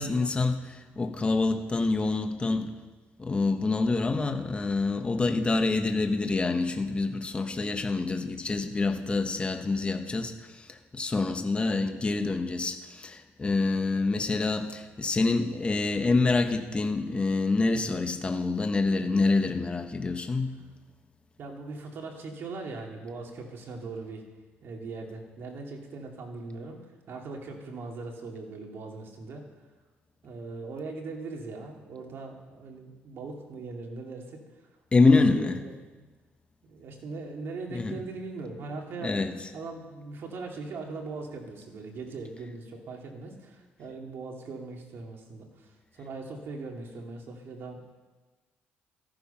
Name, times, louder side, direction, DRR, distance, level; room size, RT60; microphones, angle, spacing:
voice 1, 0.0-2.8 3.2-20.6 34.9-35.6 37.7-38.0 39.0-39.4, left 3 dB, 25° left, 6 dB, 1.3 m, -26 dB
voice 2, 21.4-24.3 24.6-29.4 30.2-34.6 34.9-36.1 36.7-39.2 39.5-47.9, right 3 dB, 60° right, 1 dB, 2.9 m, -40 dB
14.5 x 13.0 x 5.8 m, 1.3 s
cardioid pair, 100°, 5 cm